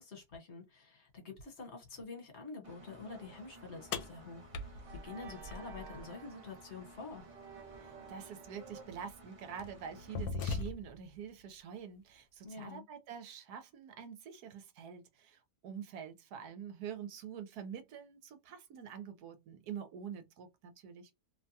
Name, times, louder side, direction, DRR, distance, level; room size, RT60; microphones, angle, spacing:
voice 1, 0.0-4.8 5.0-7.2 12.4-12.9, left 4 dB, 50° left, 1.3 m, -47 dB
Engine, 2.6-10.2, right 1 dB, 40° right, 0.5 m, -57 dB
sound 1, 3.0-8.8, right 5 dB, 55° right, 0.9 m, -54 dB
sound 2, 3.9-6.1 8.0-8.1 8.9-9.1 9.6-11.1, left 4 dB, 80° left, 1.1 m, -39 dB
voice 2, 7.8-21.1, right 8 dB, 80° right, 1.2 m, -46 dB
2.9 x 2.2 x 2.7 m
omnidirectional pair, 1.6 m